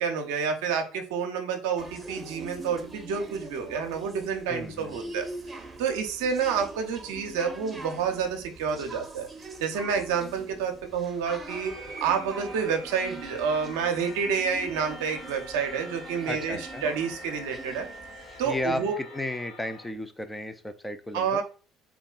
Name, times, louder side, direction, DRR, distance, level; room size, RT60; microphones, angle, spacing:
voice 1, 0.0-5.2 5.8-9.3 9.6-11.7 12.0-17.9 18.4-18.9 21.1-21.4, right 6 dB, 80° right, 5 dB, 0.5 m, -29 dB
sound 1, 1.8-18.7, right 2 dB, 20° right, 0.7 m, -43 dB
voice 2, 4.5-5.2 16.3-16.8 18.4-21.4, left 1 dB, 10° left, 9 dB, 0.4 m, -34 dB
sound 2, 11.5-19.9, equal, 70° left, 1.3 m, -45 dB
3.6 x 2.3 x 2.2 m, 0.37 s
hypercardioid pair, 70°, 0 cm